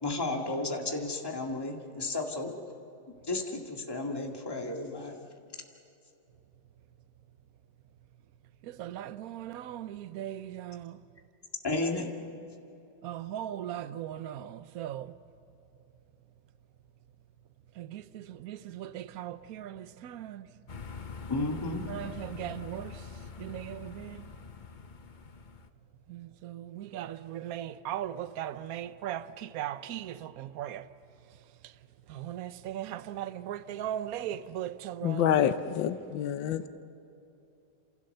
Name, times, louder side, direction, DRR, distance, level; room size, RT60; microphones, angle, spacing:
voice 1, 0.0-2.6 3.2-5.2 11.6-12.1 21.3-21.8, left 2 dB, 10° left, 2.1 m, -33 dB
voice 2, 8.6-11.1 13.0-15.2 17.7-20.5 21.9-24.3 26.1-30.9 31.2-35.4, right 11 dB, 60° right, 1.1 m, -39 dB
sound 1, 20.7-25.7, left 5 dB, 40° left, 0.6 m, -44 dB
voice 3, 35.0-36.7, left 10 dB, 80° left, 1.6 m, -27 dB
29.0 x 27.5 x 6.7 m
omnidirectional pair, 2.0 m